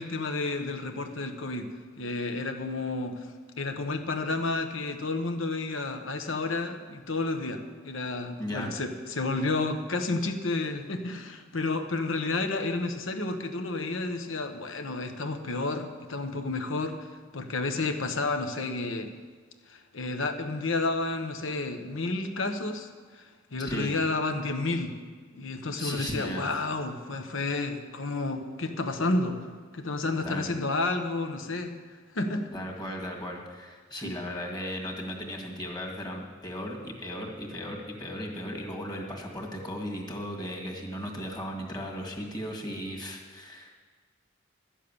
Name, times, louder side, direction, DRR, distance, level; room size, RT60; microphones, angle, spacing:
voice 1, 0.0-3.3 3.6-17.1 17.3-19.1 19.7-23.3 23.5-25.0 25.3-29.5 29.7-31.7 32.1-32.5 34.0-34.2, left 3 dB, 75° left, 7 dB, 1.2 m, -31 dB
voice 2, 8.4-8.7 23.6-23.9 25.8-26.5 30.2-30.5 32.5-43.8, equal, 20° left, 0 dB, 2.0 m, -36 dB
12.5 x 7.4 x 8.6 m, 1.5 s
head